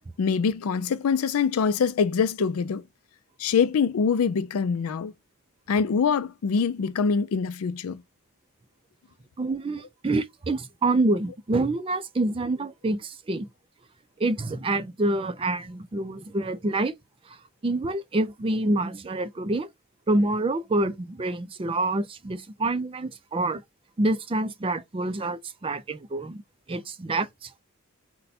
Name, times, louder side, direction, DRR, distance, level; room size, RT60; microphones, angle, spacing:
voice 1, 0.2-2.8 3.4-5.1 5.7-8.0, left 6 dB, 80° left, 0.4 m, -24 dB
voice 2, 9.4-13.5 14.2-16.9 17.6-19.7 20.1-23.6 24.0-26.4 26.7-27.5, right 2 dB, 25° right, 0.4 m, -27 dB
5.3 x 2.2 x 4.1 m
head